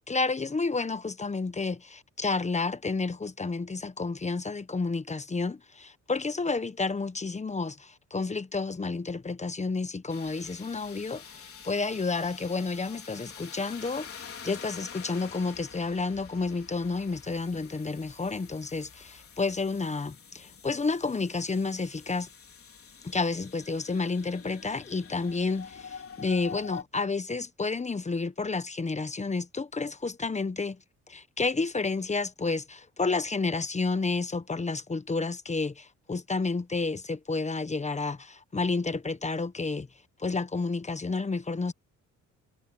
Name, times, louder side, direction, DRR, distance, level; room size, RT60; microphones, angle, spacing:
voice 1, 0.1-22.3 23.0-30.8 31.1-39.9 40.2-41.7, left 3 dB, 25° left, 1.2 m, -30 dB
sound 1, 10.1-26.8, left 6 dB, 50° left, 4.2 m, -47 dB
cardioid pair, 90°, 30 cm